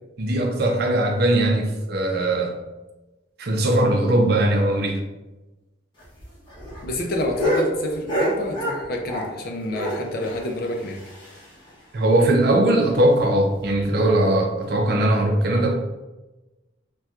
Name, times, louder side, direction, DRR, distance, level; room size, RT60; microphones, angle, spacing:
voice 1, 0.2-2.5 3.4-5.0 11.9-15.7, right 1 dB, 55° right, 2 dB, 0.5 m, -20 dB
sound 1, 6.0-9.4 9.7-11.7 12.0-12.1 12.4-12.5 12.9-13.0 13.5-13.8 14.7-14.8, equal, 25° left, 0.8 m, -28 dB
voice 2, 6.8-11.0 14.9-15.1, left 1 dB, 55° left, 2 dB, 0.5 m, -28 dB
4.2 x 2.3 x 2.4 m, 1.1 s
head